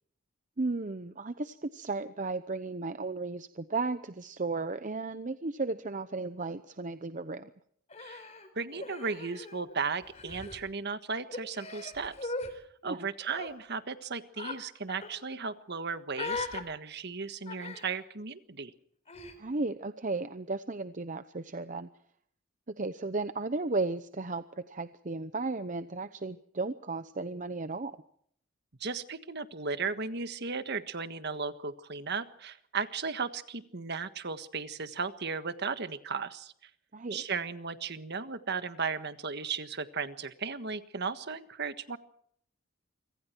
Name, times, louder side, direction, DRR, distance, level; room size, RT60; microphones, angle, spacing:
voice 1, 0.6-7.5 12.8-13.1 19.4-21.9 22.7-27.9 36.9-37.2, right 3 dB, 40° right, 11 dB, 0.8 m, -34 dB
Human voice, 7.9-9.7 10.0-10.6 11.3-12.5 13.2-13.5 14.4-14.6 14.9-15.1 16.1-16.6 17.5-18.0 19.1-19.4, left 3 dB, 30° left, 4.3 m, -39 dB
voice 2, 8.5-18.7 28.8-36.7 37.1-42.0, right 5 dB, 55° right, 11 dB, 1.5 m, -36 dB
26.5 x 24.5 x 4.6 m, 0.67 s
head